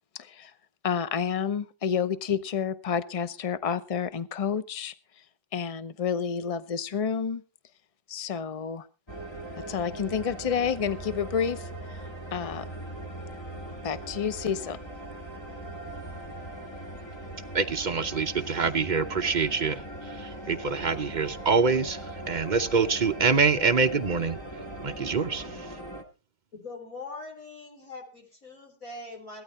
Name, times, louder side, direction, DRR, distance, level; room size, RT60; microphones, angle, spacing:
voice 1, 0.2-0.5 0.8-4.9 5.5-7.4 8.1-8.9 9.7-12.7 13.8-14.8, left 7 dB, 35° left, 13 dB, 0.6 m, -30 dB
sound 1, 9.1-26.0, right 1 dB, 15° left, 1.8 m, -40 dB
voice 2, 17.5-19.8 20.2-22.0 22.3-24.4 24.8-25.5, right 4 dB, 40° right, 8 dB, 0.6 m, -25 dB
voice 3, 26.5-29.4, left 3 dB, 50° left, 0 dB, 4.2 m, -42 dB
16.5 x 13.0 x 4.2 m, 0.33 s
omnidirectional pair, 1.8 m